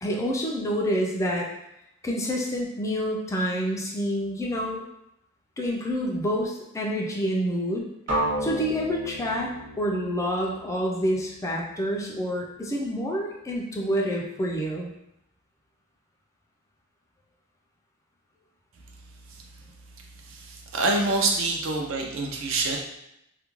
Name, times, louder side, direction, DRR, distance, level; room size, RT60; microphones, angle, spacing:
voice 1, 0.0-1.5 2.0-4.8 5.6-7.9 8.4-14.9, equal, 15° left, -2 dB, 0.3 m, -28 dB
sound 1, 8.1-12.0, right 1 dB, 40° right, 1.0 m, -33 dB
voice 2, 20.3-22.8, right 3 dB, 65° right, 1 dB, 0.5 m, -26 dB
2.4 x 2.1 x 3.0 m, 0.82 s
head